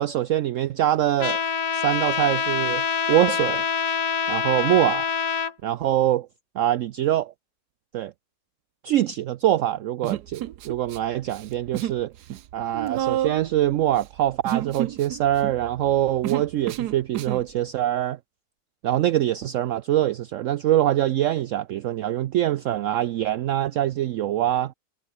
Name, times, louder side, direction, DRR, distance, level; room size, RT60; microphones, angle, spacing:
voice 1, 0.0-1.4 1.7-3.6 4.3-5.0 5.6-6.3 6.6-7.3 7.9-8.1 8.8-12.1 12.5-18.2 18.8-24.7, right 12 dB, 70° right, 0.8 m, -24 dB
Trumpet, 1.2-5.5, left 6 dB, 90° left, 2.5 m, -25 dB
Human voice, 10.0-11.0 11.3-12.0 12.3-17.5, right 12 dB, 90° right, 1.4 m, -30 dB
omnidirectional pair, 1.7 m